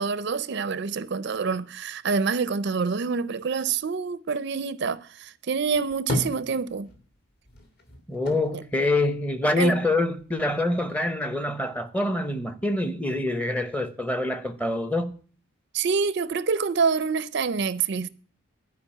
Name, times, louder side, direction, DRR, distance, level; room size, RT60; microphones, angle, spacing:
voice 1, 0.0-6.9 8.5-8.6 9.6-9.8 15.7-18.1, right 5 dB, 50° right, 0.4 m, -26 dB
sound 1, 5.6-7.1 7.4-9.8 10.2-11.1, left 1 dB, 45° left, 2.1 m, -34 dB
voice 2, 8.1-15.2, left 2 dB, 5° left, 0.7 m, -25 dB
12.0 x 5.0 x 8.4 m
head